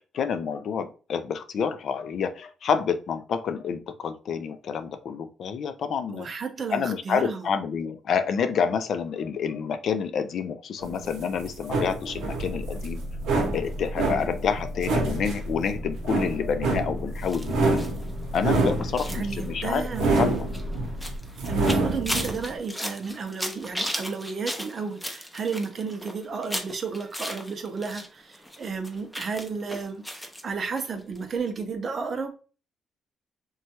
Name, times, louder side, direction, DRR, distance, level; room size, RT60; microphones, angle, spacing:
voice 1, 0.0-6.3 6.7-13.0 13.5-17.9 18.3-19.9 20.2-20.3, left 6 dB, 65° left, 10 dB, 0.4 m, -28 dB
voice 2, 6.1-7.5 19.1-20.1 21.5-32.3, right 5 dB, 45° right, 7 dB, 0.5 m, -32 dB
sound 1, 10.8-22.5, right 3 dB, 80° right, 0.8 m, -27 dB
sound 2, 12.5-21.2, left 1 dB, 25° left, 1.0 m, -36 dB
sound 3, 17.2-28.1 28.3-30.4 30.8-30.9 31.2-31.3, equal, 5° left, 0.6 m, -36 dB
3.0 x 2.2 x 2.8 m, 0.36 s
cardioid pair, 90°, 0 cm